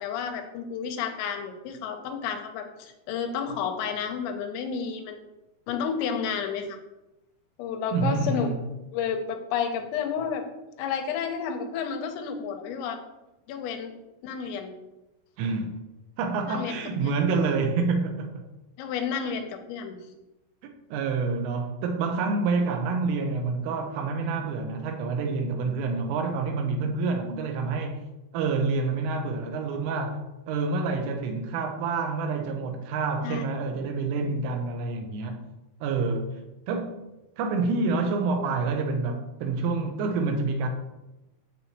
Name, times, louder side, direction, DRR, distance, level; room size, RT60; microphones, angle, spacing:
voice 1, 0.0-5.2 5.7-6.8 7.6-8.5 8.9-10.5 10.8-13.0 13.5-13.9 14.2-14.7 16.5-16.8 18.8-20.0 33.2-33.5, left 7 dB, 85° left, 3.6 m, -31 dB
voice 2, 7.9-8.6 15.4-15.8 16.2-18.4 20.6-28.0 28.3-30.2 30.5-35.4 35.8-36.3 36.7-37.0 37.4-40.7, right 4 dB, 80° right, 3.4 m, -27 dB
9.9 x 8.2 x 3.1 m
omnidirectional pair, 6.0 m